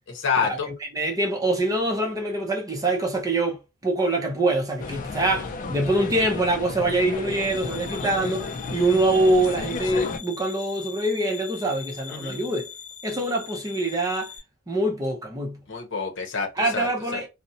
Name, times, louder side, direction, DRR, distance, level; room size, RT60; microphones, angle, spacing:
voice 1, 0.1-0.7 8.0-8.3 12.1-12.4 15.7-16.5 16.7-17.2, left 5 dB, 60° left, 0.8 m, -28 dB
voice 2, 0.7-12.7 13.0-14.3 14.7-15.6 16.6-17.3, right 2 dB, 15° right, 0.6 m, -24 dB
sound 1, 4.8-10.2, left 4 dB, 40° left, 0.4 m, -33 dB
sound 2, 7.2-14.4, left 7 dB, 5° left, 1.1 m, -41 dB
2.5 x 2.0 x 2.7 m
head